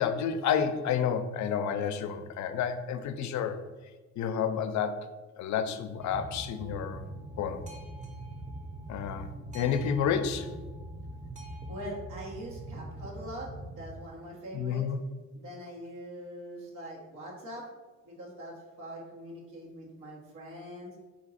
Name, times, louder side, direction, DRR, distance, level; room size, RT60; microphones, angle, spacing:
voice 1, 0.0-3.6 4.2-5.1 5.4-7.0 7.4-7.6 8.9-9.3 9.5-10.5 14.5-15.0, left 7 dB, 70° left, 10 dB, 0.5 m, -30 dB
Boat Water vehicle, 6.0-14.0, right 1 dB, 25° right, 0.7 m, -42 dB
voice 2, 11.7-14.8 15.3-17.6 18.0-21.0, equal, 90° right, -4 dB, 1.4 m, -43 dB
3.8 x 2.8 x 4.1 m, 1.3 s
cardioid pair, 90°, 30 cm